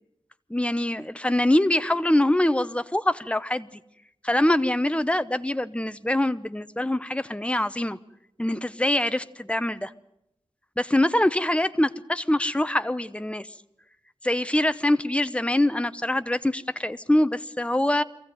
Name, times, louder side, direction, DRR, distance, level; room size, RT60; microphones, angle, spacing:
voice 1, 0.5-3.7 4.2-8.0 8.4-9.9 10.8-13.5 14.2-18.0, left 1 dB, 10° left, 13 dB, 0.8 m, -24 dB
23.5 x 15.5 x 9.3 m, 0.84 s
wide cardioid pair, 85°, 11 cm